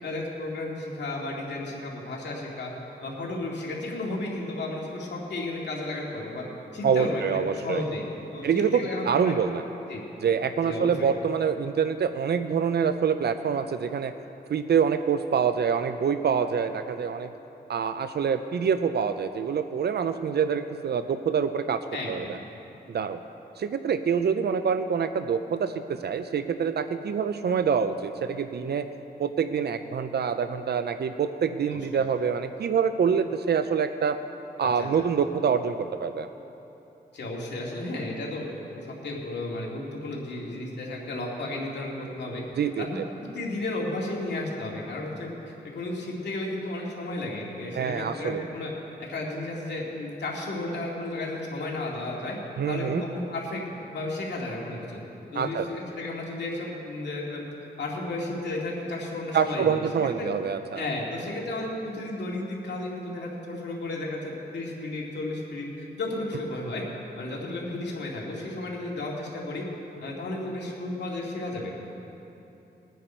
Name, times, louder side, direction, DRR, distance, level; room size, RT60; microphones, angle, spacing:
voice 1, 0.0-2.7 3.0-6.4 6.7-8.0 8.3-9.4 9.9-10.0 10.6-11.1 21.9-22.3 31.7-31.8 34.6-34.9 37.1-42.4 42.8-45.3 45.6-48.7 49.0-52.4 52.7-55.0 55.3-57.4 57.8-60.3 60.7-66.9 67.2-69.6 70.0-71.7, left 2 dB, 85° left, -3 dB, 2.4 m, -33 dB
voice 2, 6.8-7.8 8.4-9.6 10.2-14.1 14.5-17.3 17.7-21.8 22.1-22.4 22.9-23.2 23.6-28.9 29.2-34.2 34.6-36.3 42.6-43.0 47.7-48.5 52.6-53.0 55.4-55.7 59.3-60.8, right 7 dB, 70° right, 10 dB, 0.6 m, -26 dB
21.5 x 9.2 x 4.5 m, 3.0 s
cardioid pair, 65°, 17 cm